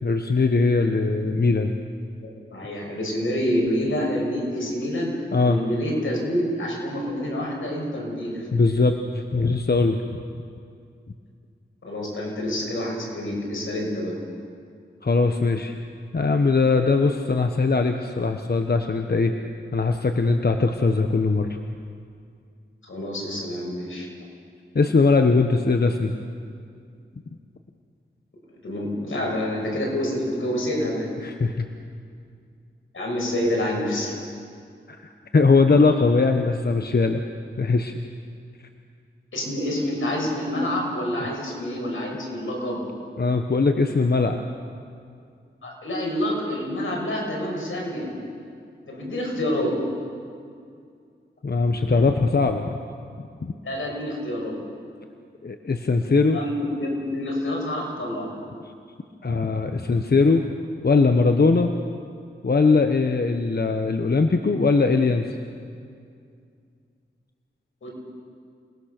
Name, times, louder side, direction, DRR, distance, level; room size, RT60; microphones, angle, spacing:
voice 1, 0.0-1.7 5.3-5.6 8.5-10.0 15.0-15.7 16.1-19.3 19.7-21.6 24.7-26.1 31.2-31.6 35.0-37.2 37.6-37.9 43.2-44.4 51.4-52.8 53.4-53.5 55.4-56.4 59.2-60.5 60.8-61.7 62.4-65.3, left 4 dB, 50° left, 5 dB, 1.2 m, -20 dB
voice 2, 0.8-1.4 2.2-5.1 5.4-8.6 11.8-14.2 22.9-24.1 28.6-31.1 32.9-34.2 39.3-42.8 45.6-48.1 48.9-49.7 53.6-54.6 56.3-58.3 67.8-67.9, left 1 dB, 85° left, -2 dB, 6.2 m, -27 dB
28.0 x 20.0 x 6.8 m, 2.3 s
wide cardioid pair, 60°, 20 cm